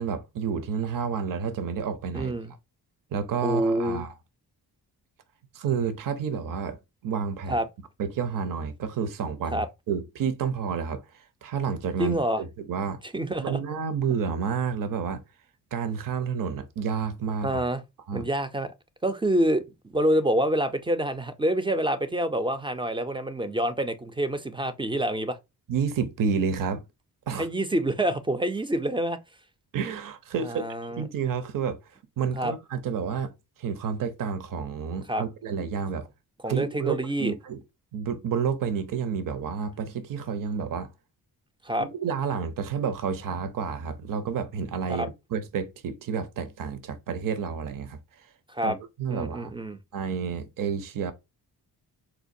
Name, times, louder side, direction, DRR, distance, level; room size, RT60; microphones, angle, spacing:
voice 1, 0.0-2.4 3.1-4.1 5.5-6.8 7.0-7.6 8.0-11.0 11.4-13.0 13.4-15.2 15.7-17.6 18.1-18.3 25.7-26.8 27.3-27.5 29.7-30.6 30.9-31.8 32.2-33.3 33.6-36.1 36.5-37.6 37.9-40.9 41.8-48.0 48.6-49.5 49.9-51.1, right 6 dB, 55° right, 0.6 m, -30 dB
voice 2, 2.1-2.5 3.4-4.0 7.5-7.7 9.5-9.7 12.0-12.4 13.1-13.6 17.4-17.8 18.1-18.7 19.0-19.6 19.9-25.4 27.3-29.2 30.4-31.0 32.3-32.5 35.1-35.2 36.4-37.3 41.6-41.9 44.9-45.1 48.5-48.8 49.1-49.8, right 1 dB, 15° right, 0.3 m, -27 dB
4.3 x 2.2 x 2.6 m
cardioid pair, 75°, 39 cm